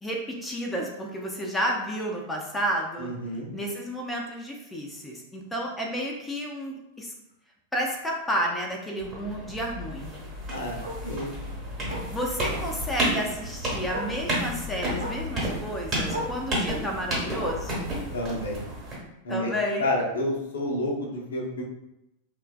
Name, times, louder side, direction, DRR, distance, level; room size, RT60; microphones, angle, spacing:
voice 1, 0.0-3.1 3.5-7.1 7.7-10.1 12.0-17.9 19.3-19.9, equal, 10° left, -1 dB, 0.4 m, -31 dB
voice 2, 3.0-3.5 10.5-10.8 11.0-11.3 18.1-18.6 19.2-19.5 19.8-21.6, left 1 dB, 65° left, -1 dB, 0.5 m, -29 dB
Bark, 4.4-4.5 4.9-5.0 5.4-5.5 5.8-5.9 7.3-7.4 9.9-10.0 10.8-11.1 11.9-12.2 13.4-13.5 13.9-14.2 14.9-15.3 16.1-16.4 17.4-17.8 18.8-18.9, equal, 85° right, 0.5 m, -35 dB
sound 1, 9.0-19.0, equal, 30° right, 1.1 m, -31 dB
3.0 x 2.2 x 2.2 m, 0.87 s
figure-of-eight pair, 90°, 0 cm